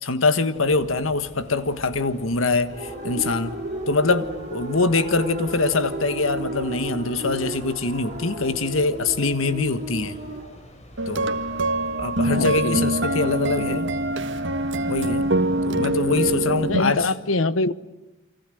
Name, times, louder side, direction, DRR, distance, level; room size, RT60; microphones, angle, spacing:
voice 1, 0.0-3.6 3.9-10.2 11.1-11.4 12.0-13.9 14.9-15.2 15.7-17.1, left 3 dB, 90° left, 1.6 m, -24 dB
sound 1, 0.5-16.7, equal, 35° left, 5.1 m, -46 dB
sound 2, 2.7-10.4, right 1 dB, 40° right, 6.7 m, -33 dB
sound 3, 11.0-16.8, right 1 dB, 65° right, 1.6 m, -24 dB
voice 2, 12.2-12.9 13.6-13.8 16.6-17.7, left 2 dB, 75° left, 1.0 m, -24 dB
29.0 x 25.0 x 7.8 m
head